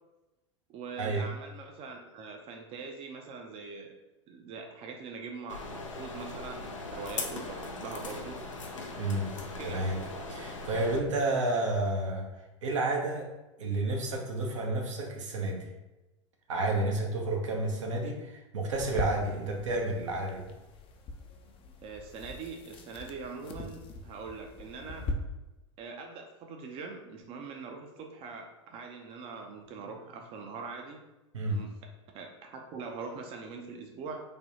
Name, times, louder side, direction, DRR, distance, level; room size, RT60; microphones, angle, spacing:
voice 1, 0.7-3.9 4.3-8.4 9.6-9.9 21.8-25.1 25.8-31.0 31.5-31.7 32.1-34.2, right 4 dB, 35° right, 2 dB, 0.5 m, -42 dB
sound 1, 5.5-11.0, left 3 dB, 85° left, 0.5 m, -39 dB
voice 2, 9.0-9.3 9.6-10.0 10.3-12.3 12.6-13.3 13.6-15.7 16.5-20.5 31.3-31.7, right 2 dB, 75° right, 1 dB, 0.8 m, -30 dB
sound 2, 18.7-25.1, left 3 dB, 35° left, 0.5 m, -42 dB
3.3 x 2.2 x 3.9 m, 1.0 s
hypercardioid pair, 85°, 16 cm